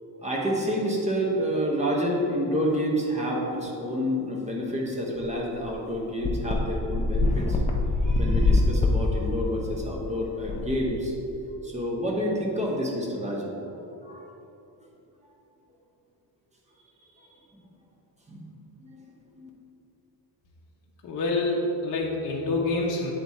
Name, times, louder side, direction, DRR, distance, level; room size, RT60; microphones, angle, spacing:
voice 1, 0.2-7.6 8.0-11.1 11.6-13.5 13.8-14.2 18.3-18.5 18.8-19.0 19.4-19.5, equal, 15° right, -2 dB, 0.8 m, -28 dB
sound 1, 5.2-5.3 5.6-5.7 6.2-11.4, left 2 dB, 15° left, 0.4 m, -25 dB
voice 2, 21.0-23.1, left 2 dB, 45° left, -3 dB, 0.7 m, -27 dB
7.9 x 3.6 x 4.1 m, 2.9 s
cardioid pair, 165°, 42 cm